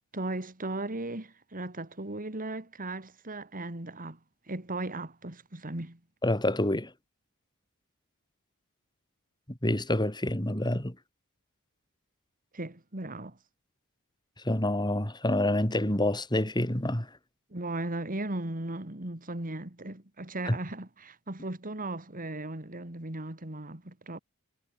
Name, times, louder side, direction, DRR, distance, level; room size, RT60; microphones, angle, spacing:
voice 1, 0.1-4.2 4.5-6.0 12.5-13.4 17.5-24.2, right 2 dB, 40° right, 2.7 m, -37 dB
voice 2, 6.2-6.9 9.5-11.0 14.5-17.1 20.5-20.6, left 1 dB, 20° left, 3.6 m, -27 dB
head